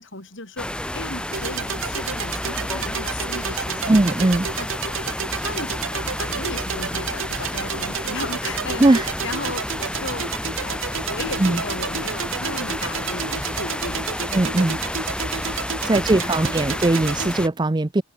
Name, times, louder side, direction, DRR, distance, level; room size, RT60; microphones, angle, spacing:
voice 1, 0.0-4.0 4.5-5.2 5.4-10.3 10.6-14.3 14.7-14.9 16.1-16.7, left 2 dB, 60° left, 5.7 m, -36 dB
sound 1, 0.6-17.5, left 1 dB, 5° left, 1.7 m, -30 dB
sound 2, 1.3-17.3, right 7 dB, 65° right, 1.7 m, -31 dB
voice 2, 3.9-4.5 8.8-9.1 11.4-11.6 14.3-14.8 15.8-18.0, right 2 dB, 20° right, 0.5 m, -19 dB
head